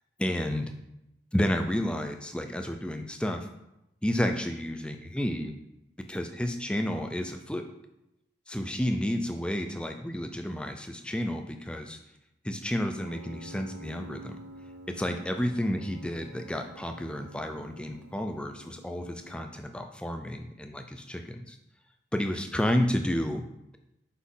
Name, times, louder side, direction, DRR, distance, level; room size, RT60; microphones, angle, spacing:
voice 1, 0.2-0.7 1.3-3.5 4.0-5.6 6.1-7.7 8.5-12.0 12.4-14.4 14.9-21.6 22.1-23.4, equal, 5° left, 5 dB, 0.4 m, -31 dB
Piano, 13.0-19.4, right 1 dB, 75° right, 1.3 m, -49 dB
6.1 x 5.7 x 3.8 m, 0.87 s
head